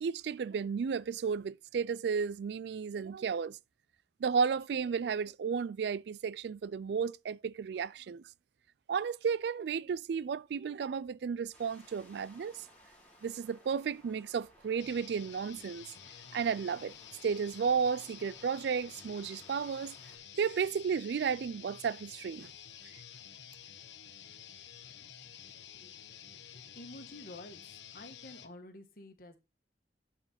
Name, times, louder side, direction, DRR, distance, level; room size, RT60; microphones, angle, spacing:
voice 1, 0.0-3.6 4.2-8.2 8.9-12.6 13.2-15.8 16.3-16.9 17.2-20.0 20.4-22.5, right 6 dB, 65° right, 0.3 m, -33 dB
sound 1, 11.5-20.2, equal, 10° left, 3.3 m, -60 dB
sound 2, 14.8-28.5, left 9 dB, 85° left, 1.1 m, -51 dB
voice 2, 26.5-27.6 27.9-29.4, left 1 dB, 50° left, 1.6 m, -50 dB
11.0 x 4.5 x 4.1 m
head